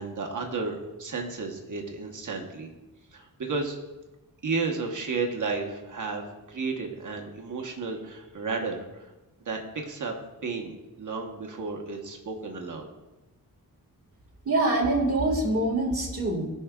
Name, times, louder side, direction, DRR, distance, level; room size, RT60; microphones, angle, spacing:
voice 1, 0.0-2.7 3.1-3.8 4.4-9.1 9.4-10.2 10.4-12.9, right 4 dB, 55° right, 2 dB, 1.2 m, -33 dB
voice 2, 14.4-16.5, right 2 dB, 40° right, -3 dB, 1.8 m, -25 dB
14.5 x 5.6 x 2.4 m, 1.1 s
wide cardioid pair, 160°, 36 cm